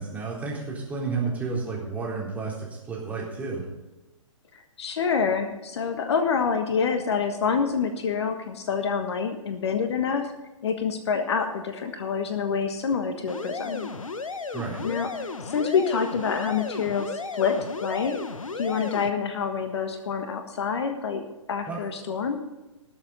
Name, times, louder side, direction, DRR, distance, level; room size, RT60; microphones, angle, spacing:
voice 1, 0.0-3.6 14.5-14.8 21.7-21.8, right 4 dB, 10° right, -4 dB, 3.7 m, -31 dB
voice 2, 4.5-10.3 10.6-13.9 14.8-18.2 18.6-21.2 21.5-22.4, left 6 dB, 55° left, 7 dB, 1.4 m, -27 dB
sound 1, 13.3-19.1, left 4 dB, 75° left, 1.1 m, -34 dB
19.5 x 7.2 x 4.1 m, 1.1 s
figure-of-eight pair, 125°, 17 cm